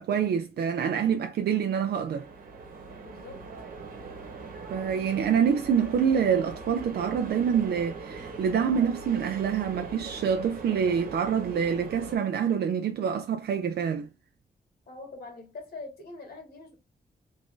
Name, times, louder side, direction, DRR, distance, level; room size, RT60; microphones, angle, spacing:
voice 1, 0.0-2.3 4.7-14.1, right 7 dB, 85° right, 0.5 m, -26 dB
sound 1, 1.3-12.1, right 4 dB, 60° right, 1.1 m, -41 dB
voice 2, 3.0-3.4 14.9-16.7, left 3 dB, 85° left, 1.7 m, -43 dB
3.6 x 2.6 x 3.6 m
wide cardioid pair, 145°, 16 cm